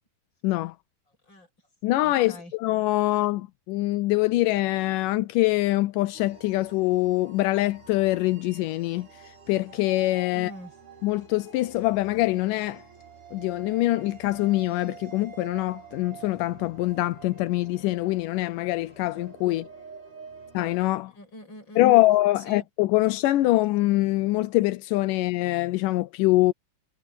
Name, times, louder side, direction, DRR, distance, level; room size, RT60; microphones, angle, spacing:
voice 1, 0.4-0.8 1.8-2.3 2.6-9.1 9.5-10.5 11.0-12.8 13.3-19.7 20.5-21.1 21.8-26.5, left 18 dB, 85° left, 2.3 m, -24 dB
voice 2, 1.1-1.5 2.0-2.5 3.1-3.2 10.3-10.8 19.7-19.8 20.3-20.5 21.0-22.7, equal, 35° left, 8.0 m, -45 dB
sound 1, 6.1-21.0, right 7 dB, 70° right, 7.6 m, -48 dB
omnidirectional pair, 3.7 m